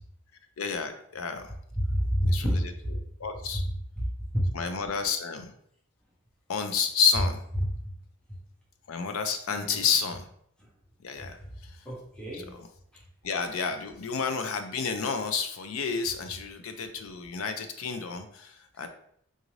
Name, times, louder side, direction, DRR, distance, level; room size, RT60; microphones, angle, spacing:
voice 1, 0.6-1.5 2.3-2.5 3.2-3.6 4.5-5.5 6.5-7.4 8.9-10.3 11.0-11.4 11.6-11.8 12.3-12.6 13.2-18.9, left 5 dB, 90° left, 7 dB, 0.5 m, -30 dB
voice 2, 1.8-3.0 3.5-3.6 4.0-4.5 7.6-7.9 8.3-8.4 9.7-9.9 10.6-10.7 11.2-11.5 11.8-12.5 12.9-13.0, equal, 5° left, -5 dB, 0.8 m, -29 dB
3.9 x 2.5 x 3.1 m, 0.67 s
head